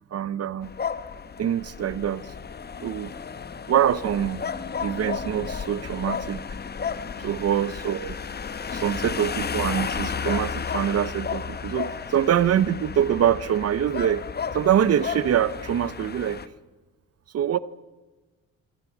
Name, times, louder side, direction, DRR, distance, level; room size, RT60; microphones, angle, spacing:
voice 1, 0.1-0.7 1.4-2.3 2.8-3.1 3.7-4.4 4.8-6.4 7.2-8.2 8.7-14.2 14.5-16.4 17.3-17.6, right 10 dB, 50° right, 17 dB, 0.8 m, -24 dB
sound 1, 0.6-16.5, left 6 dB, 30° left, 1.0 m, -33 dB
24.0 x 15.5 x 7.2 m, 1.2 s
cardioid pair, 85°, 33 cm